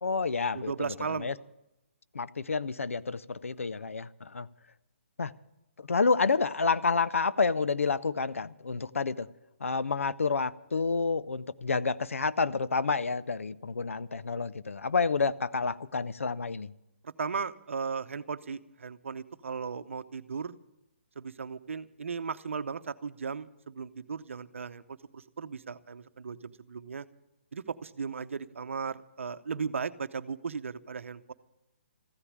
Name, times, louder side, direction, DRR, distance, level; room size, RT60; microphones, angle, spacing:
voice 1, 0.0-1.3 2.1-4.5 5.2-5.3 5.8-9.3 9.6-16.7, left 4 dB, 85° left, 16 dB, 0.6 m, -29 dB
voice 2, 0.5-1.4 17.0-20.6 21.2-27.1 27.5-31.3, right 5 dB, 70° right, 13 dB, 0.8 m, -36 dB
14.5 x 9.9 x 8.7 m, 0.89 s
hypercardioid pair, 150°, 7 cm